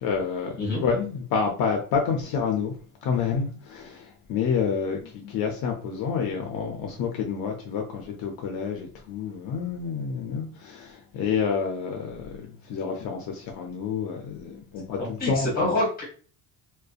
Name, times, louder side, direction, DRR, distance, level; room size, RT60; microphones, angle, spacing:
voice 1, 0.0-2.8 3.0-15.7, left 6 dB, 65° left, 0.5 m, -29 dB
voice 2, 15.0-16.0, left 2 dB, 25° left, 1.0 m, -26 dB
2.5 x 2.1 x 2.3 m
cardioid pair, 170°, 38 cm